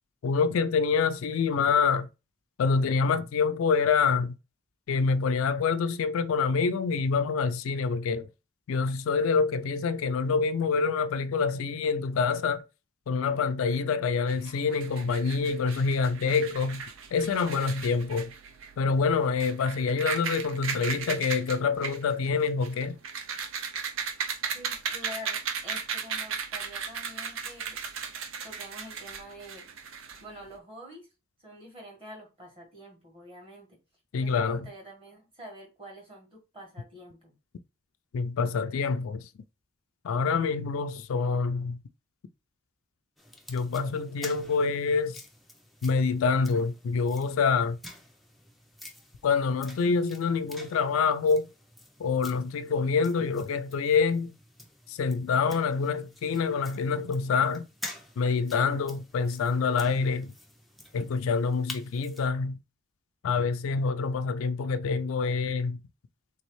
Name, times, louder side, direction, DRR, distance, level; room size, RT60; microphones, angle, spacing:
voice 1, 0.2-2.1 2.6-4.3 4.9-8.3 8.7-12.6 13.1-16.8 17.1-18.3 18.8-23.0 34.1-34.6 38.1-39.2 40.0-41.8 43.5-45.2 45.8-47.8 49.2-51.5 52.0-54.4 54.9-57.7 58.2-60.3 60.9-62.6 63.2-65.8, left 5 dB, 80° left, 0.4 m, -26 dB
sound 1, 14.3-30.6, right 6 dB, 75° right, 0.6 m, -37 dB
voice 2, 24.5-27.8 28.4-29.7 30.2-31.1 31.4-33.8 34.1-37.4, equal, 25° right, 1.5 m, -46 dB
sound 2, 43.2-62.3, left 1 dB, ahead, 0.4 m, -48 dB
3.4 x 3.1 x 3.1 m
head